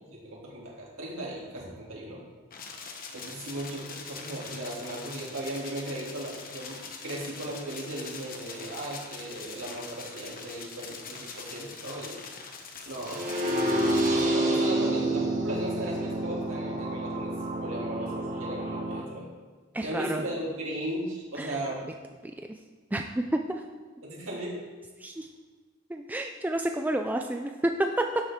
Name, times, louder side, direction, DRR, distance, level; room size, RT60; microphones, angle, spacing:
voice 1, 0.0-2.2 3.1-12.2 12.8-13.3 14.0-17.3 17.6-19.3 19.8-21.8 24.0-24.6, right 1 dB, 65° right, -4 dB, 2.9 m, -36 dB
sound 1, 2.5-14.2, left 5 dB, 40° left, 1.1 m, -43 dB
sound 2, 13.0-19.0, right 1 dB, 35° right, 1.5 m, -28 dB
voice 2, 19.7-20.2 21.4-21.6 22.5-22.6 22.9-23.4 25.0-25.3 25.9-27.7, right 1 dB, 10° right, 4 dB, 0.4 m, -30 dB
12.0 x 7.5 x 3.7 m, 1.4 s
head